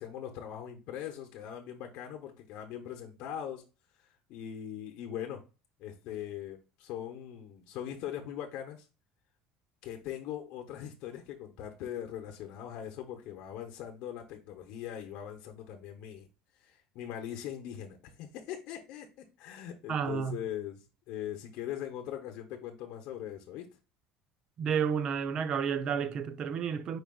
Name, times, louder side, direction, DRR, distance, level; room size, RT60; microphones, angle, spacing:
voice 1, 0.0-3.6 4.0-5.4 5.8-8.9 9.8-16.3 16.6-19.1 19.4-23.7, left 10 dB, 60° left, 0.8 m, -41 dB
voice 2, 19.9-20.4 24.6-27.0, right 7 dB, 40° right, 0.5 m, -31 dB
4.8 x 4.7 x 2.3 m
cardioid pair, 155°, 2 cm